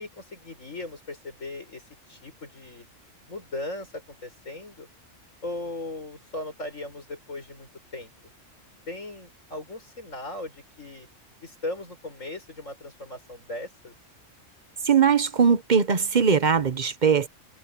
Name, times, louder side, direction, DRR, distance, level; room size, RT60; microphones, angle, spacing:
voice 1, 0.0-2.9 3.3-4.9 5.4-8.1 8.9-11.1 11.4-14.0, left 2 dB, 80° left, 7.1 m, -38 dB
voice 2, 14.8-17.3, right 6 dB, 40° right, 1.0 m, -20 dB
omnidirectional pair, 1.3 m